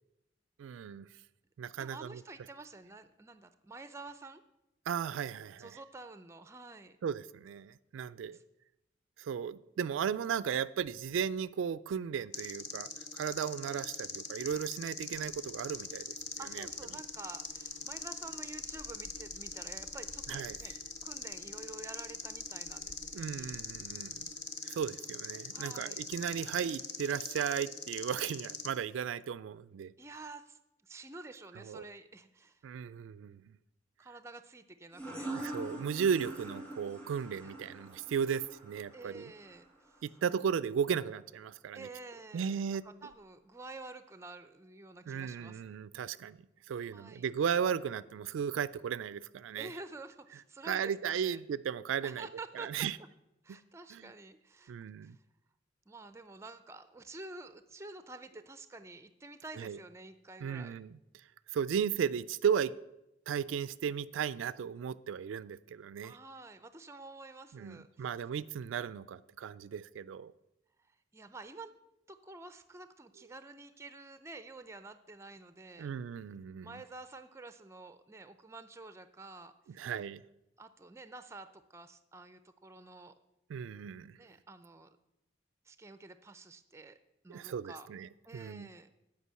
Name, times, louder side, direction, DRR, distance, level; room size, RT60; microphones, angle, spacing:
voice 1, 0.6-1.1 1.6-2.2 4.9-5.7 7.0-8.4 9.2-16.2 16.5-16.7 20.3-20.7 23.1-24.3 24.6-29.9 31.7-31.8 32.6-33.6 35.2-39.3 40.0-41.9 42.3-42.8 45.1-46.4 46.7-49.7 50.6-52.3 52.6-53.0 53.9-54.1 54.7-55.2 59.6-59.8 60.4-61.0 61.5-62.7 63.3-66.2 67.5-70.3 75.8-76.8 79.8-80.2 83.5-84.2 87.3-88.7, right 7 dB, 85° right, 17 dB, 0.3 m, -35 dB
voice 2, 1.7-4.4 5.6-7.0 8.3-8.4 16.4-20.7 21.0-23.5 25.5-26.0 30.0-32.7 34.0-35.3 37.4-37.5 38.9-39.9 41.7-45.8 46.9-47.3 49.6-51.4 52.0-52.9 53.4-54.7 55.0-55.2 55.9-60.8 66.0-68.1 70.8-71.7 72.1-75.9 76.6-79.9 80.6-83.1 84.2-84.9 85.7-87.0 87.2-87.9 88.2-88.9, right 3 dB, 15° right, 11 dB, 0.4 m, -49 dB
sound 1, 12.3-28.7, left 6 dB, 65° left, 0.9 m, -42 dB
Gull seagull, 15.1-24.5, equal, 35° left, 0.7 m, -59 dB
sound 2, 34.9-40.3, right 1 dB, 5° left, 1.6 m, -44 dB
8.3 x 5.1 x 7.4 m, 0.89 s
head